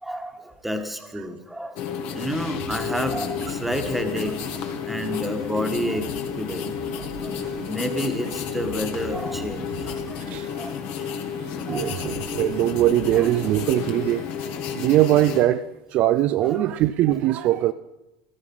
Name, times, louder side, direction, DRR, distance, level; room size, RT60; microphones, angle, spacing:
voice 1, 0.0-6.1 6.4-6.7 7.2-10.8 11.7-12.2 13.2-13.5 16.4-16.8, equal, 5° right, 1.6 m, -30 dB
sound 1, 1.8-15.4, left 7 dB, 60° left, 1.8 m, -31 dB
sound 2, 2.3-7.8 8.0-10.8 11.0-14.1, right 5 dB, 90° right, 3.3 m, -43 dB
voice 2, 11.7-14.2 14.8-17.7, right 14 dB, 50° right, 0.5 m, -21 dB
14.5 x 13.5 x 5.5 m
supercardioid pair, 115°, 3 cm